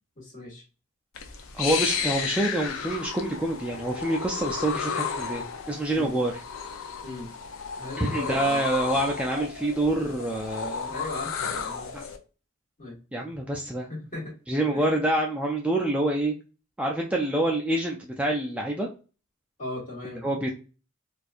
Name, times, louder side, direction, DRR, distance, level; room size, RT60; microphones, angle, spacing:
voice 1, 0.2-0.6 5.9-6.1 7.0-7.3 7.8-8.6 10.9-11.9 12.8-13.0 13.9-14.3 14.7-14.9 19.6-20.2, left 2 dB, 35° left, -3 dB, 1.4 m, -37 dB
sound 1, 1.1-12.2, left 6 dB, 65° left, 0.5 m, -33 dB
voice 2, 1.5-6.3 8.0-10.9 11.9-12.0 13.1-13.9 14.5-16.4 16.8-18.9 20.2-20.5, right 1 dB, 5° right, -1 dB, 0.3 m, -27 dB
4.3 x 2.4 x 2.4 m, 0.34 s
head